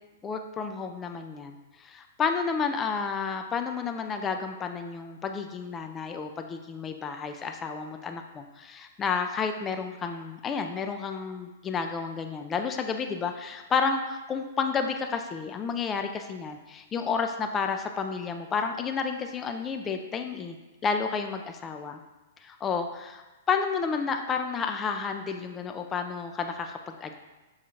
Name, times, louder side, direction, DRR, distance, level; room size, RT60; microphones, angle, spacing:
voice 1, 0.2-20.6 20.8-22.0 22.4-27.2, left 5 dB, 20° left, 5 dB, 0.3 m, -31 dB
6.0 x 2.3 x 2.9 m, 1.2 s
figure-of-eight pair, 110°, 0 cm